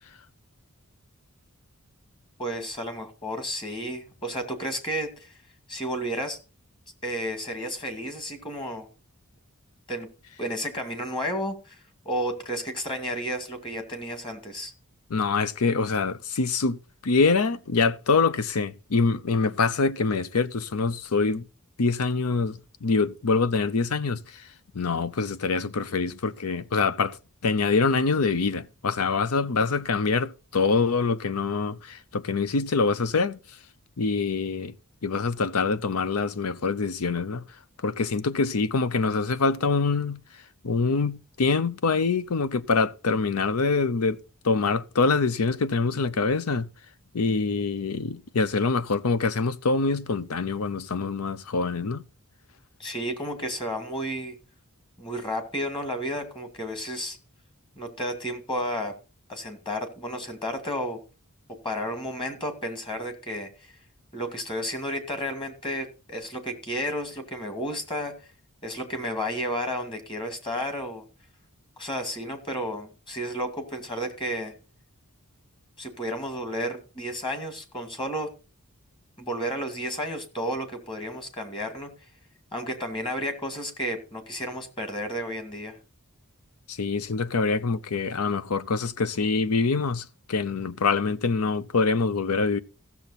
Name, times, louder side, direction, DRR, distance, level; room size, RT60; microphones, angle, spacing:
voice 1, 2.4-5.3 5.7-6.4 7.0-8.9 9.9-10.1 10.4-11.8 12.0-14.7 52.8-54.4 55.0-57.2 57.8-58.9 59.3-61.0 61.6-63.5 64.1-68.1 68.6-71.1 71.8-74.5 75.8-78.3 79.2-81.9 82.5-85.8, equal, 25° left, 2.2 m, -32 dB
voice 2, 15.1-16.8 17.0-21.4 21.8-24.5 24.7-27.2 27.4-33.4 34.0-34.7 35.0-37.4 37.8-40.2 40.6-44.2 44.4-46.7 47.1-52.0 86.7-92.6, left 4 dB, 80° left, 0.7 m, -25 dB
15.0 x 7.0 x 4.1 m
head